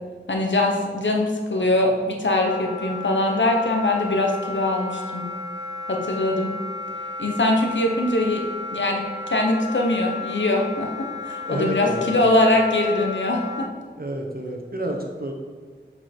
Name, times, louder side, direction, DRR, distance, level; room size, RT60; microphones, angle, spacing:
voice 1, 0.3-5.3 5.9-6.5 7.2-8.4 8.7-9.0 9.3-13.7, left 2 dB, 75° left, 1 dB, 1.0 m, -22 dB
Wind instrument woodwind instrument, 2.4-13.7, left 3 dB, 20° right, 0.4 m, -33 dB
voice 2, 11.4-12.2 14.0-15.3, right 1 dB, 50° right, 2 dB, 1.1 m, -29 dB
7.3 x 4.9 x 4.4 m, 1.5 s
wide cardioid pair, 55°, 19 cm